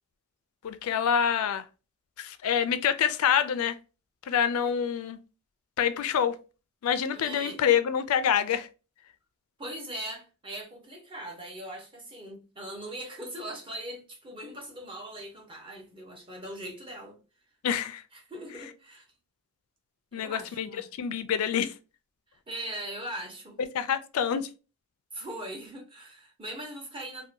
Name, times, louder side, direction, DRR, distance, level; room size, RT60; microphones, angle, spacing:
voice 1, 0.6-1.6 2.2-3.8 4.3-5.2 5.8-6.4 6.8-8.7 17.6-18.0 20.1-20.7 21.0-21.7 23.7-24.5, left 8 dB, 75° left, 0.3 m, -26 dB
voice 2, 7.1-7.6 9.6-17.2 18.1-19.1 20.1-20.8 22.3-23.6 25.1-27.3, right 1 dB, 25° right, 0.8 m, -40 dB
2.7 x 2.2 x 2.4 m
head